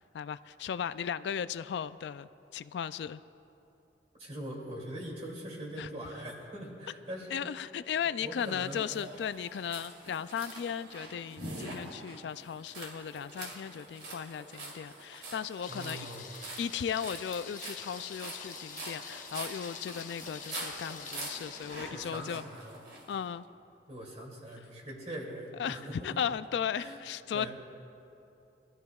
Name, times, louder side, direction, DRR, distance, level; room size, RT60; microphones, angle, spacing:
voice 1, 0.1-3.2 5.8-5.9 7.3-16.1 16.6-22.4 23.1-23.4 25.6-25.8 26.0-27.5, left 8 dB, 80° left, 15 dB, 0.3 m, -36 dB
voice 2, 4.2-7.6 8.0-8.8 15.7-16.3 21.9-22.8 23.9-26.2 26.7-27.0 27.3-27.5, right 1 dB, 35° right, -2 dB, 2.6 m, -42 dB
sound 1, 8.4-23.2, right 2 dB, 80° right, 3.0 m, -45 dB
Thunder, 15.6-22.2, left 7 dB, 45° left, 0.8 m, -47 dB
24.0 x 13.5 x 2.4 m, 2.8 s
head